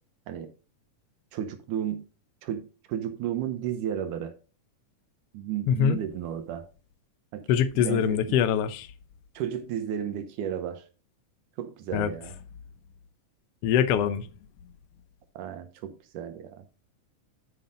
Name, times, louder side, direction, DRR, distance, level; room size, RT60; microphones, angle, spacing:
voice 1, 1.3-2.0 2.4-4.4 5.3-6.7 7.3-7.5 7.7-8.4 9.3-10.9 11.6-12.4 15.4-16.7, right 9 dB, 85° right, 2.5 m, -33 dB
voice 2, 5.7-6.0 7.5-8.9 11.9-12.1 13.6-14.2, left 8 dB, 70° left, 1.5 m, -23 dB
12.0 x 5.5 x 3.8 m
omnidirectional pair, 3.6 m